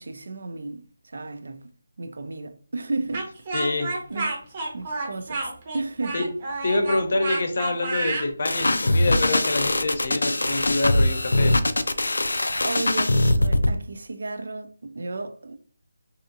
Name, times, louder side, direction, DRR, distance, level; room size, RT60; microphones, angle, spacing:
voice 1, 0.0-1.7 2.0-3.3 3.7-4.3 4.7-6.3 12.6-15.6, right 3 dB, 65° right, 0.4 m, -33 dB
Speech, 3.1-8.3, right 2 dB, 30° right, 0.7 m, -30 dB
voice 2, 3.5-3.9 6.1-6.3 6.6-11.6, left 2 dB, 50° left, 0.6 m, -26 dB
sound 1, 8.5-13.8, left 1 dB, 85° left, 0.3 m, -22 dB
2.7 x 2.4 x 2.5 m
figure-of-eight pair, 165°, 0 cm